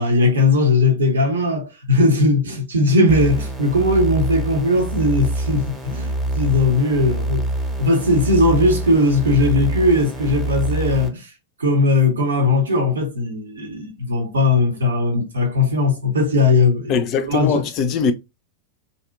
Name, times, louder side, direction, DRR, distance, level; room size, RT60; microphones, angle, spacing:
voice 1, 0.0-7.5 7.8-11.3 11.6-17.7, left 2 dB, 70° right, 0.6 m, -18 dB
sound 1, 3.1-11.1, right 1 dB, 10° right, 0.7 m, -25 dB
voice 2, 16.9-18.1, left 5 dB, 35° left, 0.3 m, -21 dB
2.6 x 2.1 x 2.3 m
figure-of-eight pair, 90°, 0 cm